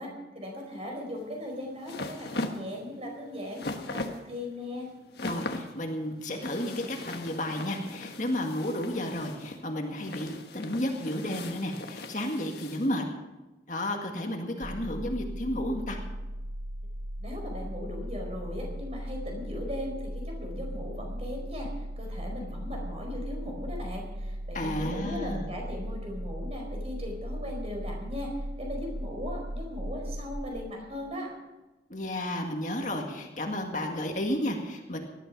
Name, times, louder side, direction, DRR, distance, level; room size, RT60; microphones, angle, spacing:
voice 1, 0.0-4.9 17.2-31.3, left 1 dB, 35° right, 1 dB, 4.6 m, -38 dB
sound 1, 1.2-12.9, left 2 dB, 65° left, 1.4 m, -40 dB
voice 2, 5.2-13.0 13.7-16.0 24.5-25.5 31.9-35.0, left 1 dB, 45° left, 2 dB, 1.9 m, -32 dB
sound 2, 14.6-30.4, equal, 85° right, 2.1 m, -37 dB
18.5 x 12.5 x 5.4 m, 1.1 s
head